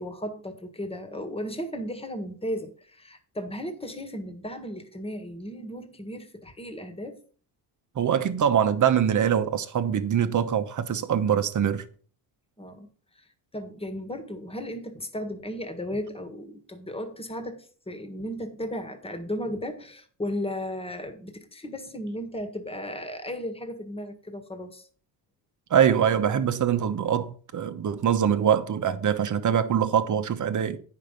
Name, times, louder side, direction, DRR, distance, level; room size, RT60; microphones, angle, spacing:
voice 1, 0.0-7.2 12.6-24.9, equal, 15° left, 1.6 m, -35 dB
voice 2, 7.9-11.8 25.7-30.8, right 8 dB, 40° right, 1.1 m, -23 dB
9.5 x 5.7 x 5.2 m
cardioid pair, 110°, 45 cm